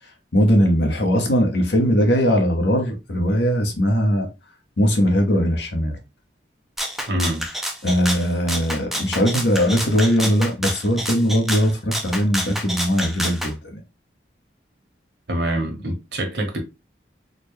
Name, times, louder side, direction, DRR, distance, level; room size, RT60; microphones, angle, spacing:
voice 1, 0.3-4.3 4.8-6.0 7.8-13.8, equal, 75° left, 1.0 m, -20 dB
Rattle (instrument), 6.8-13.5, equal, ahead, 0.4 m, -28 dB
voice 2, 7.1-7.5 15.3-16.6, right 1 dB, 70° right, 1.2 m, -25 dB
3.9 x 2.2 x 3.2 m
head